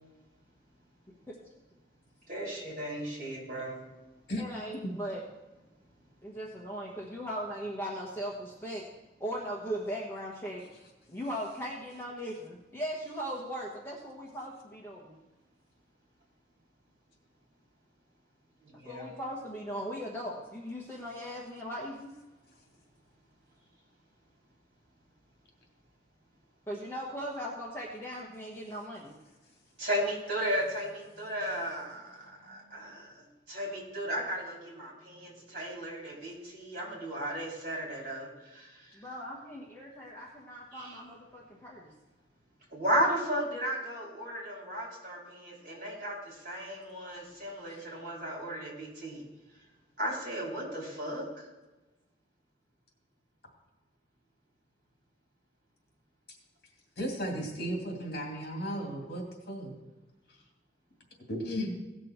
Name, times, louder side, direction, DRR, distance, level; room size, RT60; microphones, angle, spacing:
voice 1, 2.3-3.8 18.6-19.1 29.8-33.1 33.5-38.3 38.5-38.7 40.7-41.0 42.7-49.2 50.0-51.3, equal, 50° right, -3 dB, 4.1 m, -35 dB
voice 2, 4.4-5.2 6.2-8.8 9.2-10.6 11.1-15.2 18.8-22.1 26.7-29.2 38.9-41.9, equal, 15° left, -4 dB, 1.3 m, -38 dB
voice 3, 57.0-59.8 61.3-61.7, equal, 60° left, 0 dB, 2.6 m, -35 dB
17.5 x 6.2 x 4.5 m, 1.1 s
head